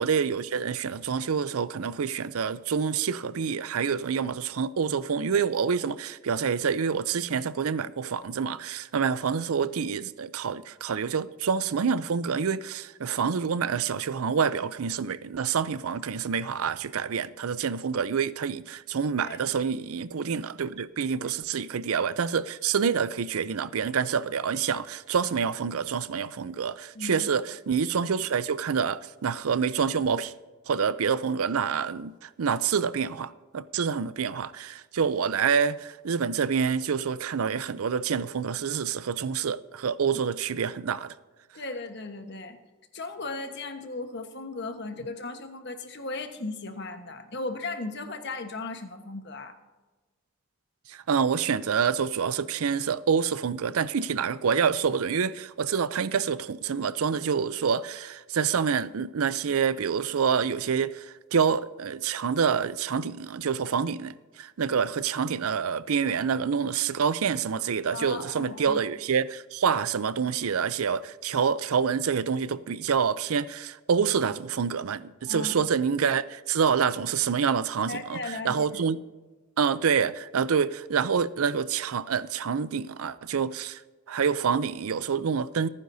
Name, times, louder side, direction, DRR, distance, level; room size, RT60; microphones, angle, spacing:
voice 1, 0.0-30.3 30.7-41.1 50.9-79.0 79.6-83.8 84.1-85.7, right 6 dB, 85° right, 0.5 m, -27 dB
voice 2, 19.2-19.5 21.2-21.3 26.9-27.2 41.5-42.6 42.9-49.5 67.9-68.8 75.2-75.7 77.9-78.8, left 3 dB, 50° left, 1.3 m, -36 dB
26.0 x 9.7 x 2.7 m
head